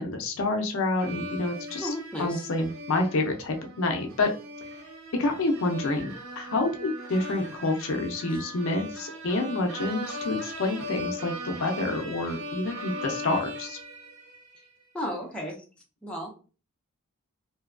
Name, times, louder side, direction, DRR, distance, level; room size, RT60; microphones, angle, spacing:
voice 1, 0.0-1.9 2.2-4.3 5.1-13.8, left 2 dB, 65° left, 3 dB, 0.5 m, -28 dB
sound 1, 1.0-14.7, equal, 70° right, 0.6 m, -39 dB
voice 2, 1.8-2.5 8.3-8.4 14.9-15.6 16.0-16.3, left 1 dB, 5° left, -3 dB, 0.5 m, -34 dB
2.6 x 2.2 x 2.4 m, 0.35 s
head